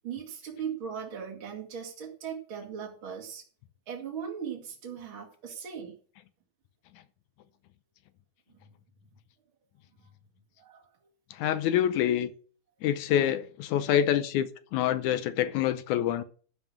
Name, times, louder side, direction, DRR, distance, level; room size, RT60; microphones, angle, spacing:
voice 1, 0.0-3.4 3.9-6.0 8.6-8.7 10.0-10.1 10.6-10.9, right 7 dB, 40° right, 2.1 m, -38 dB
voice 2, 11.3-12.3 12.8-16.2, left 10 dB, 80° left, 1.7 m, -26 dB
13.0 x 5.6 x 7.3 m
omnidirectional pair, 4.3 m